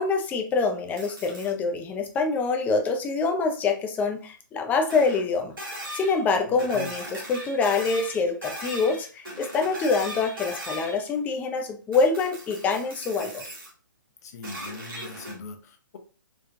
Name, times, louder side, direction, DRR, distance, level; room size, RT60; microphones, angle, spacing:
voice 1, 0.0-5.5 5.9-13.5, left 4 dB, 15° left, 4 dB, 0.5 m, -25 dB
sound 1, 1.0-1.5 4.9-5.3 5.6-6.2 6.6-11.0 11.9-13.7 14.4-15.4, equal, 80° right, 1.8 m, -38 dB
voice 2, 6.5-6.9 14.2-16.0, left 4 dB, 50° left, 6 dB, 0.8 m, -41 dB
4.5 x 2.4 x 2.5 m, 0.39 s
figure-of-eight pair, 130°, 11 cm